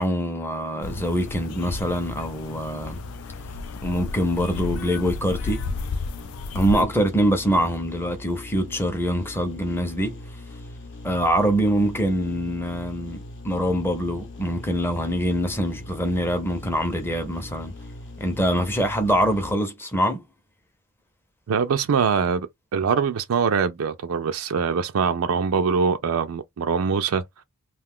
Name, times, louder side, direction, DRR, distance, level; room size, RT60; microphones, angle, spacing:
voice 1, 0.0-3.0 3.8-5.6 6.5-10.2 11.0-17.7 18.2-20.2, equal, 10° left, 0.6 m, -24 dB
sound 1, 0.8-6.8, left 4 dB, 90° left, 0.4 m, -33 dB
sound 2, 0.8-19.6, left 2 dB, 60° left, 0.8 m, -41 dB
voice 2, 21.5-27.2, right 6 dB, 70° right, 0.4 m, -23 dB
2.5 x 2.3 x 3.5 m
head